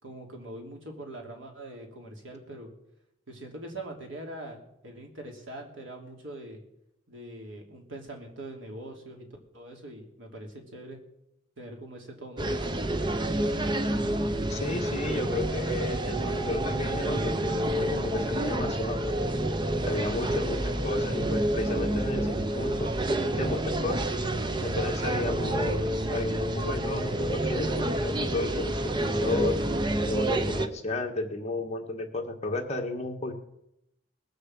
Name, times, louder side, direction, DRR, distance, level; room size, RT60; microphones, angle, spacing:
voice 1, 0.0-2.7 3.3-6.6 7.1-9.3 9.5-11.0 11.6-12.6, right 1 dB, 80° right, 2 dB, 3.1 m, -42 dB
athens piraeus beach, 12.4-30.7, right 1 dB, 25° right, 0.7 m, -28 dB
voice 2, 14.5-19.1 19.9-22.9 23.4-24.0 24.6-29.6 30.0-33.3, left 2 dB, 35° left, 2 dB, 1.7 m, -33 dB
20.0 x 6.7 x 7.8 m, 0.82 s
head